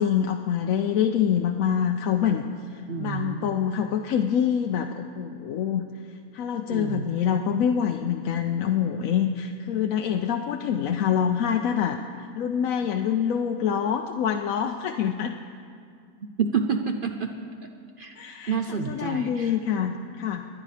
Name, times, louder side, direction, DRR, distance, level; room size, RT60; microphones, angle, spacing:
voice 1, 0.0-2.4 2.7-5.8 6.3-15.3 18.2-20.5, left 8 dB, 70° left, 4 dB, 1.0 m, -26 dB
voice 2, 2.9-3.5 6.7-7.4 16.2-17.3 18.0-19.5, right 5 dB, 55° right, 5 dB, 0.6 m, -29 dB
27.0 x 10.5 x 3.3 m, 2.2 s
omnidirectional pair, 1.6 m